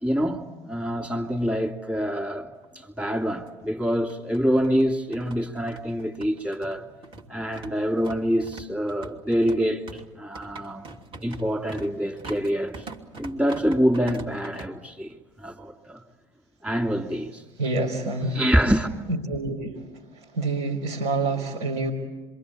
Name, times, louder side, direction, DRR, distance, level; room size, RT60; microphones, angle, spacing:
voice 1, 0.0-6.9 7.3-10.9 11.2-12.9 13.2-16.0 16.6-17.4 18.3-18.9, equal, 10° right, 2.9 m, -26 dB
sound 1, 2.6-2.7 3.0-3.1 3.9-14.7, right 3 dB, 40° right, 2.9 m, -43 dB
voice 2, 17.6-18.4 19.3-19.9 20.3-21.9, right 3 dB, 75° right, 3.8 m, -27 dB
26.5 x 24.0 x 8.5 m
hypercardioid pair, 75°, 14 cm